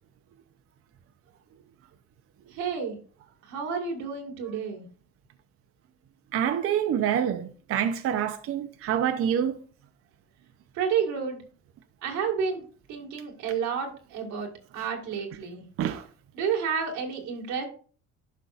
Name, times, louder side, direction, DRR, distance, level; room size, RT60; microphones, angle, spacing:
voice 1, 2.5-3.0 3.4-4.9 10.7-11.4 12.0-15.6 16.3-17.6, right 6 dB, 90° right, 2.0 m, -30 dB
voice 2, 6.3-9.6 15.8-16.0, right 9 dB, 50° right, 0.6 m, -26 dB
11.5 x 5.4 x 2.5 m
cardioid pair, 140°, 29 cm